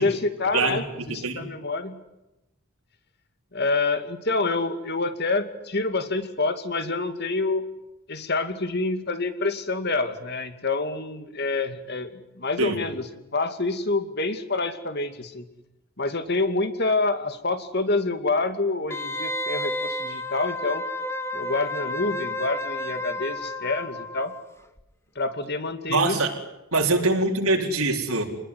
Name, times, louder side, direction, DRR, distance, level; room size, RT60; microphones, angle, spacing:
voice 1, 0.0-2.0 3.5-7.6 8.1-12.1 12.4-15.5 16.0-20.8 21.3-24.3 25.2-26.2 27.5-27.6, left 3 dB, 45° left, 9 dB, 2.4 m, -27 dB
voice 2, 1.1-1.5 12.6-12.8 25.9-26.3 26.7-28.2, right 3 dB, 75° right, 0 dB, 4.2 m, -23 dB
Wind instrument woodwind instrument, 18.9-24.5 24.8-24.9, left 1 dB, 10° left, 1.4 m, -31 dB
28.5 x 20.5 x 9.8 m, 0.94 s
head